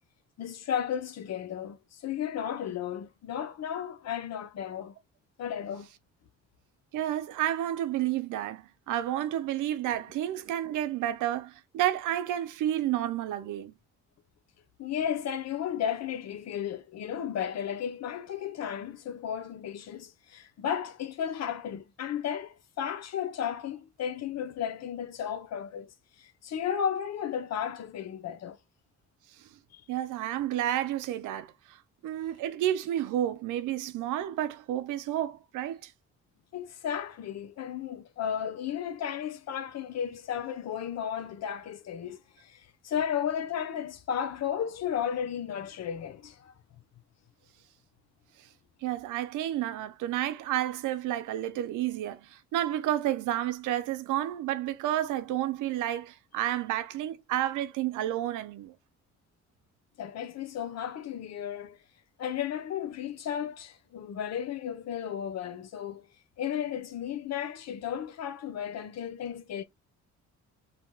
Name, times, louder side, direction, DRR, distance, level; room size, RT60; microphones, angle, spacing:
voice 1, 0.4-4.9 5.4-5.9 14.8-28.6 29.7-29.8 36.5-46.5 60.0-61.8 62.2-66.1 66.4-69.6, left 9 dB, 60° left, 0.6 m, -34 dB
voice 2, 6.9-13.8 29.9-31.8 32.0-35.9 48.8-58.8, right 12 dB, 85° right, 0.6 m, -30 dB
2.8 x 2.2 x 3.1 m
cardioid pair, 90°, 30 cm